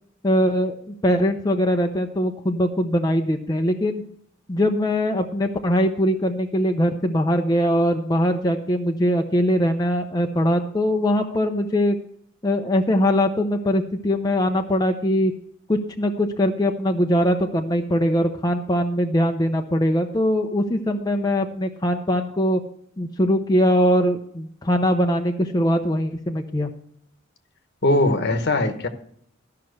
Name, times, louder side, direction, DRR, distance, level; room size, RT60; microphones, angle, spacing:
voice 1, 0.2-4.0 4.5-12.0 12.4-15.3 15.7-22.6 23.0-26.7, equal, 20° left, 3 dB, 0.7 m, -21 dB
voice 2, 27.8-28.9, left 2 dB, 60° left, 8 dB, 1.1 m, -20 dB
13.0 x 5.8 x 6.3 m, 0.68 s
head